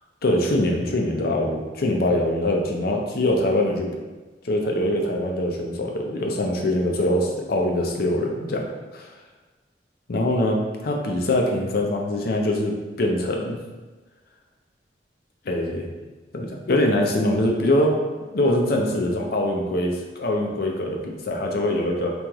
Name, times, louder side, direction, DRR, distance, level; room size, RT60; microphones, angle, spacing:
voice 1, 0.2-3.9 4.4-8.6 8.9-9.1 10.1-13.6 15.5-15.9 16.3-18.0 18.3-22.1, left 1 dB, 55° left, 1 dB, 0.5 m, -23 dB
3.1 x 3.0 x 3.5 m, 1.3 s
head